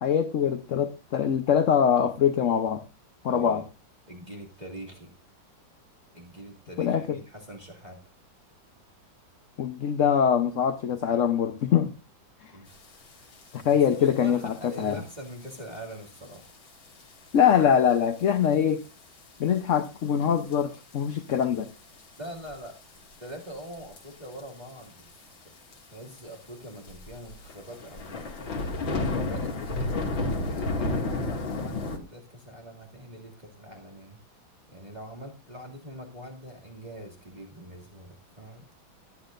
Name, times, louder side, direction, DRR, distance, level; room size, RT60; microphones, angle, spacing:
voice 1, 0.0-2.8 3.2-3.6 6.8-7.2 9.6-11.9 13.5-15.0 17.3-18.8 19.4-21.7, left 8 dB, 50° left, 1.0 m, -23 dB
voice 2, 3.2-3.7 4.1-5.1 6.1-8.0 12.5-12.7 13.7-16.4 22.2-22.7 23.2-25.1 25.4-25.5 25.9-28.5 28.9-34.2 34.7-38.7, right 1 dB, 20° right, 2.5 m, -43 dB
sound 1, 13.3-13.4 13.7-14.1 14.7-14.9 15.5-15.6 16.3-16.4 16.7-16.8 17.0-17.1 18.2-18.5 18.9-19.0 19.8-19.9 20.5-20.9 21.3-21.4 22.0-22.7 23.7-24.0 24.3-24.4 24.7-24.8 25.0-25.1 25.7-25.8 26.2-26.3 26.9-32.0, left 2 dB, 80° left, 3.2 m, -31 dB
18.0 x 12.0 x 2.6 m
omnidirectional pair, 2.1 m